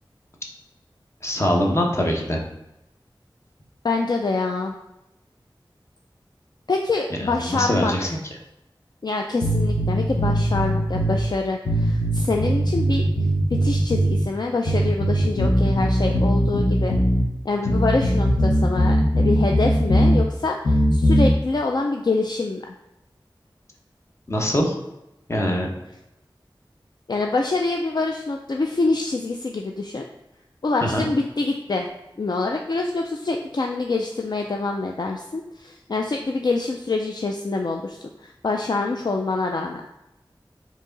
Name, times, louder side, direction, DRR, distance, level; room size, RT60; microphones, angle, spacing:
voice 1, 1.2-2.4 7.1-8.1 24.3-24.8 25.3-25.7 30.8-31.1, equal, 30° left, 0 dB, 0.9 m, -23 dB
voice 2, 3.8-4.7 6.7-8.1 9.0-13.0 13.6-16.9 17.4-22.6 27.1-30.0 30.6-31.9 32.2-39.8, left 3 dB, 55° left, 2 dB, 0.4 m, -25 dB
sound 1, 9.4-11.2 11.7-14.2 14.7-17.2 17.7-20.2 20.6-21.3, equal, 70° left, 1.0 m, -20 dB
4.6 x 3.0 x 3.8 m, 0.90 s
wide cardioid pair, 55°, 9 cm